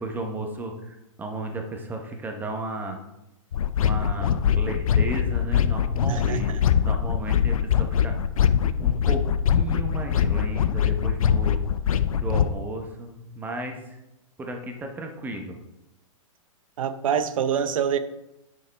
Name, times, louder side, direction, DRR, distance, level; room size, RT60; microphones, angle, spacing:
voice 1, 0.0-3.0 3.8-8.1 8.8-9.3 9.5-11.6 12.2-14.0 14.4-15.6, right 1 dB, 10° right, 4 dB, 1.0 m, -34 dB
sound 1, 3.5-12.5, left 8 dB, 85° left, 0.5 m, -23 dB
voice 2, 6.1-6.6 16.8-18.0, right 7 dB, 75° right, 11 dB, 0.8 m, -25 dB
9.4 x 5.5 x 3.4 m, 0.91 s
hypercardioid pair, 140°, 17 cm